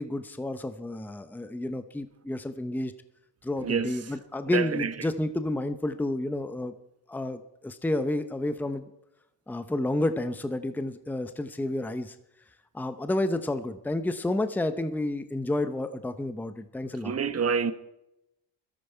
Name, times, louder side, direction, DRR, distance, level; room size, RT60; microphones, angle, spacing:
voice 1, 0.0-2.9 3.4-6.7 7.1-8.9 9.5-12.1 12.7-17.1, left 1 dB, 5° left, 0.8 m, -30 dB
voice 2, 3.6-3.9 4.5-4.9 17.0-17.7, right 6 dB, 30° right, 1.1 m, -27 dB
17.0 x 13.0 x 4.6 m
cardioid pair, 95°, 46 cm